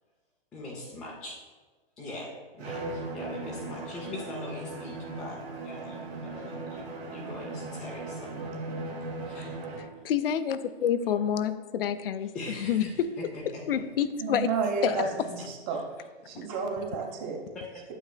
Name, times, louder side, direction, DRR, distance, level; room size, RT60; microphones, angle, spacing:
voice 1, 0.5-1.4 2.0-2.3 2.5-5.4 5.6-8.3 9.2-9.6 12.3-13.8 15.7-15.8 17.5-17.8, left 2 dB, 5° left, 0.3 m, -42 dB
Bowed string instrument, 2.6-10.0, right 2 dB, 90° right, 2.1 m, -38 dB
voice 2, 9.8-12.3 12.6-13.1 13.7-14.5 14.8-15.0 16.3-16.5, left 9 dB, 65° left, 0.5 m, -28 dB
voice 3, 14.2-15.8 16.3-17.5, right 5 dB, 25° right, 1.0 m, -32 dB
9.0 x 7.7 x 2.2 m
hypercardioid pair, 140°, 31 cm